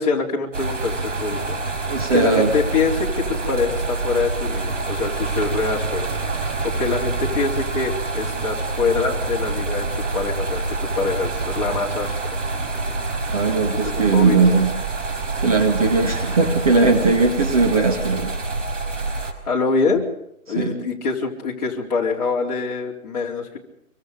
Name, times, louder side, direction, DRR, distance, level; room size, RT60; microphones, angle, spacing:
voice 1, 0.0-12.1 13.7-14.4 19.5-20.0 20.5-23.6, left 4 dB, 25° left, -3 dB, 4.0 m, -25 dB
sound 1, 0.5-19.3, right 3 dB, 55° right, 5.1 m, -26 dB
voice 2, 1.9-2.5 13.3-14.7 15.4-18.4 20.6-20.7, right 3 dB, 25° right, 3 dB, 2.2 m, -18 dB
26.5 x 24.0 x 5.2 m, 0.79 s
hypercardioid pair, 175°, 44 cm